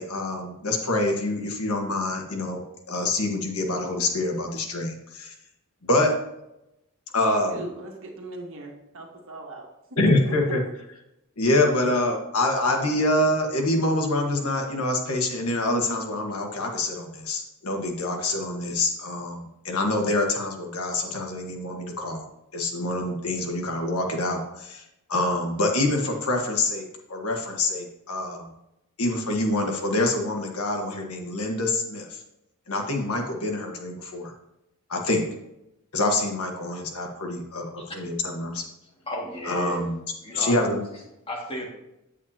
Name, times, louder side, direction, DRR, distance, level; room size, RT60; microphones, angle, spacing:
voice 1, 0.0-5.3 5.8-6.1 7.1-7.6 10.0-10.6 11.4-22.3 22.5-24.8 25.1-28.5 29.0-32.2 32.7-34.3 34.9-35.2 35.9-38.6 39.5-40.0 40.3-40.8, left 2 dB, 80° left, 2 dB, 1.4 m, -26 dB
voice 2, 7.5-9.7 10.3-10.5, right 2 dB, 60° right, 0 dB, 1.7 m, -39 dB
voice 3, 39.0-39.8 40.2-40.6 40.9-41.7, equal, 25° left, -2 dB, 2.0 m, -34 dB
8.5 x 8.3 x 2.8 m, 0.88 s
head